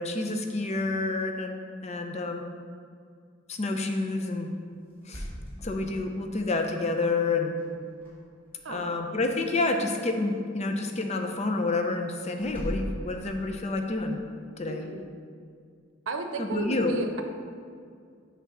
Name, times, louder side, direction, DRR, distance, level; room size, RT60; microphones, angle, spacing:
voice 1, 0.0-1.6 1.8-2.5 3.5-4.5 5.1-5.2 5.6-7.6 8.7-14.2 14.6-14.9 16.4-16.9, left 3 dB, 35° left, 4 dB, 0.6 m, -29 dB
sound 1, 4.9-6.4 7.6-8.1 8.4-8.9 12.4-13.8, equal, 10° left, 1.7 m, -38 dB
voice 2, 8.6-9.1 14.7-15.1 16.1-17.2, right 3 dB, 85° right, 5 dB, 0.7 m, -34 dB
7.3 x 3.4 x 6.1 m, 2.2 s
head